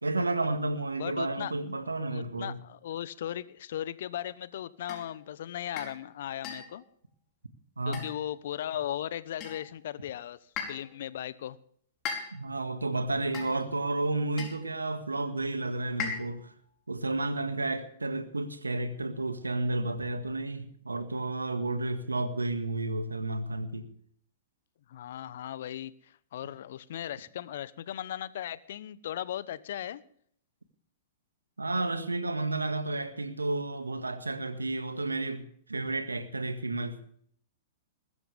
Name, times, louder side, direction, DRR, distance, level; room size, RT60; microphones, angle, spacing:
voice 1, 0.0-2.6 7.8-8.0 12.3-16.5 16.9-23.9 31.6-37.1, right 2 dB, 90° right, 1.8 m, -32 dB
voice 2, 1.0-1.5 2.1-6.8 7.8-10.4 10.7-11.6 24.9-30.0, left 11 dB, 60° left, 0.9 m, -37 dB
sound 1, 4.9-5.1 5.8-6.0 6.4-6.8 7.9-8.4 9.4-9.8 10.6-10.9 12.1-12.6 13.3-13.7 14.4-14.7 16.0-16.5, left 6 dB, 35° left, 4.7 m, -38 dB
21.0 x 13.5 x 3.5 m
figure-of-eight pair, 110°, 0 cm